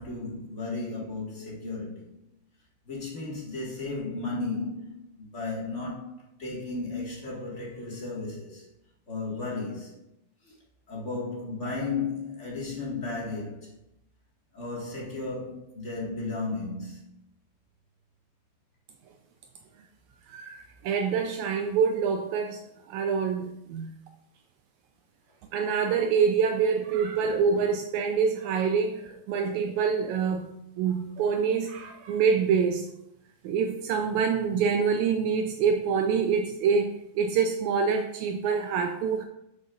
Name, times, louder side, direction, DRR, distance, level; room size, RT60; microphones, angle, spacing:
voice 1, 0.0-2.1 2.8-8.7 9.1-9.9 10.4-10.5 10.9-13.7 14.5-17.2, left 3 dB, 35° left, 1.1 m, -34 dB
voice 2, 20.3-22.6 22.9-23.9 25.5-32.9 33.4-39.3, right 6 dB, 85° right, 1.6 m, -26 dB
11.0 x 6.4 x 2.4 m
omnidirectional pair, 3.9 m